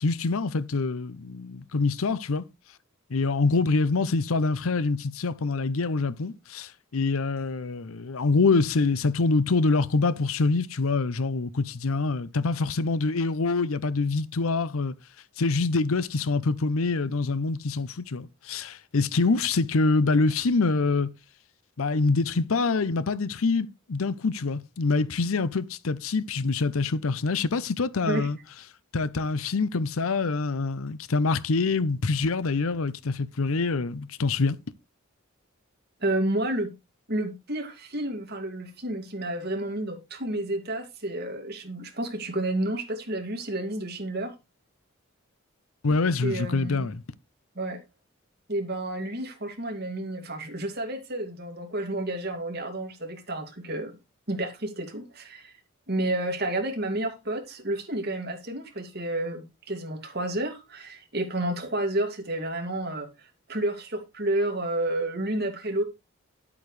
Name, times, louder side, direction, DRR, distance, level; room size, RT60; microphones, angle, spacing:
voice 1, 0.0-2.4 3.1-14.9 15.4-21.1 21.8-28.4 28.9-34.6 45.8-47.0, left 3 dB, 80° left, 0.7 m, -25 dB
voice 2, 36.0-36.7 37.1-44.3 46.2-46.9 47.6-47.8 48.5-54.0 54.3-55.5 55.9-65.8, right 1 dB, 50° right, 2.4 m, -30 dB
10.5 x 8.6 x 3.3 m
head